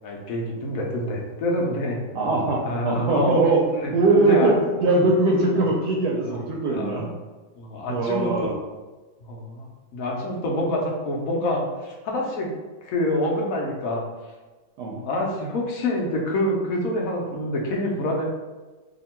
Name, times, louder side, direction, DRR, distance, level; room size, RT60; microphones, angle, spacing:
voice 1, 0.0-2.0 2.6-4.5 4.8-5.0 6.2-6.4 6.7-7.0 7.6-8.5 9.3-12.5 12.8-14.0 15.0-18.3, left 1 dB, 65° left, -1 dB, 0.9 m, -27 dB
voice 2, 2.1-3.6 3.9-7.1 7.9-8.5 14.8-15.0, right 2 dB, 75° right, -2 dB, 1.0 m, -21 dB
2.8 x 2.6 x 4.2 m, 1.2 s
omnidirectional pair, 2.1 m